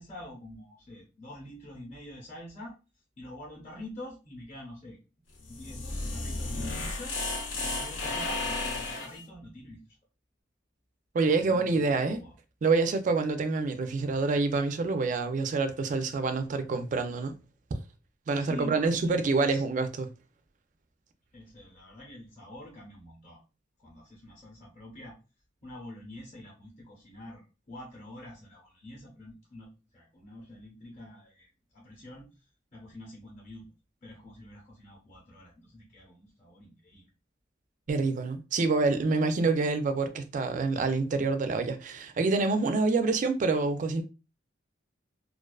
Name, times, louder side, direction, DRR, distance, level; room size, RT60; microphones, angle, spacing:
voice 1, 0.0-2.7 3.2-5.0 5.5-7.2 7.5-9.8 11.4-12.3 14.0-14.2 18.4-19.6 21.3-23.4 23.8-25.2 25.6-32.3 32.7-33.7 34.0-37.1, left 1 dB, 35° left, 0.7 m, -46 dB
sound 1, 5.4-9.2, left 2 dB, 90° left, 0.6 m, -33 dB
voice 2, 11.1-12.2 12.6-17.3 18.3-20.1 37.9-44.0, right 3 dB, 40° right, 0.3 m, -27 dB
2.4 x 2.3 x 2.3 m
head